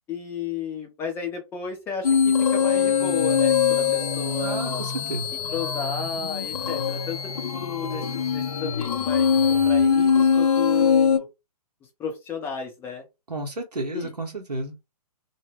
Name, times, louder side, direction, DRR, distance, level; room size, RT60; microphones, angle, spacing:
voice 1, 0.1-4.8 5.3-11.3 12.0-13.0 13.9-14.1, left 6 dB, 10° left, 0.5 m, -33 dB
sound 1, 2.0-11.2, left 6 dB, 65° left, 0.5 m, -22 dB
voice 2, 4.4-5.3 13.3-14.7, right 2 dB, 85° right, 0.7 m, -32 dB
2.1 x 2.0 x 3.3 m
figure-of-eight pair, 130°, 20 cm